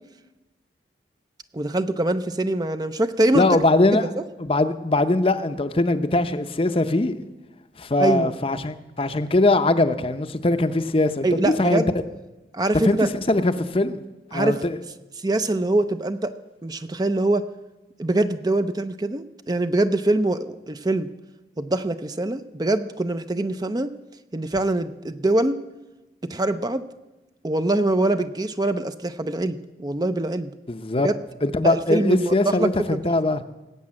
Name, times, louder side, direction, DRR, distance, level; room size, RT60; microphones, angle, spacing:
voice 1, 1.5-3.5 4.2-4.3 8.0-8.3 11.2-11.9 12.5-13.1 14.3-14.6 15.2-16.3 16.6-17.4 18.0-21.1 21.6-23.9 24.3-25.6 26.3-26.8 27.4-30.5 31.0-31.1 31.6-33.0, right 2 dB, 20° right, 0.5 m, -23 dB
voice 2, 3.3-4.1 4.4-7.2 7.8-11.8 12.8-14.0 14.3-14.8 30.7-31.1 31.4-33.4, left 2 dB, 30° left, 0.7 m, -21 dB
19.0 x 8.7 x 7.5 m
head